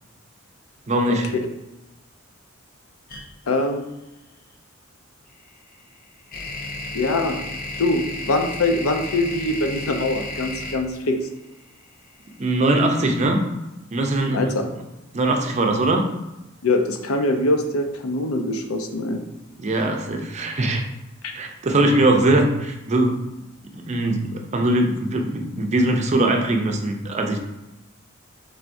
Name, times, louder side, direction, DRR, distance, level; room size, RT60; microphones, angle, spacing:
voice 1, 0.9-1.3 12.4-13.4 13.9-14.5 15.1-16.0 19.6-20.8 21.3-23.2 23.9-27.4, right 1 dB, 35° right, 3 dB, 0.5 m, -21 dB
sound 1, 3.1-3.2 5.3-12.3, left 2 dB, 45° left, 0.6 m, -33 dB
voice 2, 3.5-3.8 6.9-7.4 7.8-11.2 14.3-14.6 16.6-19.2 21.2-21.3, left 2 dB, 85° left, 5 dB, 0.6 m, -23 dB
4.6 x 3.4 x 2.6 m, 0.96 s
head